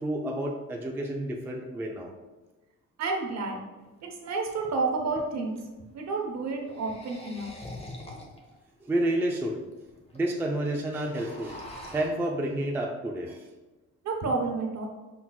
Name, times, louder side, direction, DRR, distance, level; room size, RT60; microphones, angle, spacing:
voice 1, 0.0-2.1 8.8-9.6 10.1-11.6 11.9-13.4, right 1 dB, 5° right, 0 dB, 0.4 m, -30 dB
voice 2, 3.0-3.6 4.0-5.6 5.9-7.5 14.0-14.9, right 3 dB, 50° right, 1 dB, 1.0 m, -30 dB
sound 1, 3.8-3.9 4.5-5.7 6.5-8.6 9.1-9.2 9.4-9.5 9.7-10.2 10.5-10.6 10.9-12.1, left 1 dB, 20° left, 0.9 m, -44 dB
5.7 x 3.9 x 2.3 m, 1.2 s
cardioid pair, 120°, 34 cm